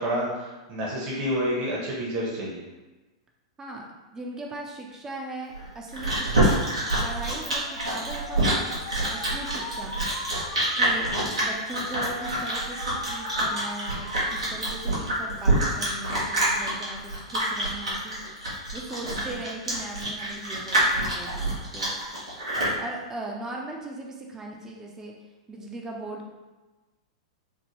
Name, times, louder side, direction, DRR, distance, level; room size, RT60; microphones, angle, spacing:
voice 1, 0.0-2.6 11.1-11.3 19.1-19.3 22.5-22.8, equal, 40° right, -4 dB, 1.0 m, -30 dB
voice 2, 4.1-6.7 7.0-10.0 10.8-11.1 11.4-18.2 18.7-22.0 22.7-25.1 25.5-26.3, right 2 dB, 20° right, 0 dB, 0.5 m, -38 dB
Chewing mastication, 5.5-22.8, right 1 dB, 85° right, 1.1 m, -26 dB
Alarm, 7.2-14.4 14.8-15.4, left 1 dB, 85° left, 1.0 m, -41 dB
3.5 x 2.1 x 3.0 m, 1.2 s
hypercardioid pair, 105°, 3 cm